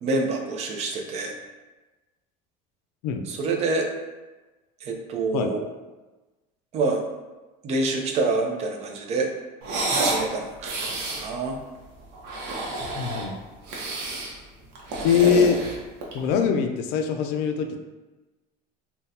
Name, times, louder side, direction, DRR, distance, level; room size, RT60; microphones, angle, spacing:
voice 1, 0.0-1.4 3.3-3.9 4.8-5.7 6.7-7.0 7.6-9.3 9.9-11.6, right 3 dB, 40° right, 2 dB, 0.4 m, -27 dB
sound 1, 9.6-10.3 10.6-11.3 12.1-13.3 13.7-14.3 14.8-16.3, right 2 dB, 70° right, 0.7 m, -29 dB
voice 2, 13.0-13.4 15.0-15.6 16.1-17.8, left 6 dB, 75° left, 5 dB, 0.4 m, -22 dB
3.6 x 2.2 x 2.7 m, 1.2 s
cardioid pair, 155°, 17 cm